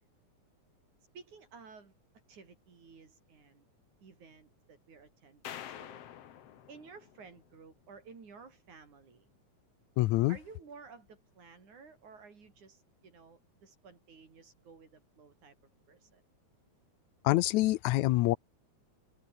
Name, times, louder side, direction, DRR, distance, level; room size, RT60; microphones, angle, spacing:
voice 1, 1.1-1.9 2.3-3.7 4.0-6.0 6.7-9.3 10.3-15.6 15.9-16.2, right 5 dB, 80° right, 6.1 m, -54 dB
sound 1, 5.4-7.8, left 10 dB, 60° left, 2.2 m, -47 dB
voice 2, 10.0-10.4 17.2-18.4, left 17 dB, 85° left, 2.0 m, -26 dB
open air
omnidirectional pair, 3.4 m